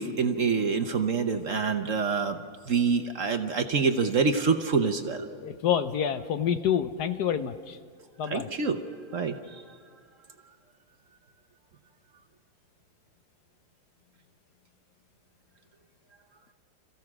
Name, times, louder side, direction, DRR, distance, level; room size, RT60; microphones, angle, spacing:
voice 1, 0.0-2.4 2.7-5.3 8.3-8.8 9.1-9.6, right 5 dB, 55° right, 7 dB, 1.1 m, -26 dB
voice 2, 5.3-7.8 8.2-8.5, left 9 dB, 70° left, 10 dB, 1.2 m, -28 dB
27.5 x 15.5 x 6.1 m, 2.2 s
omnidirectional pair, 2.0 m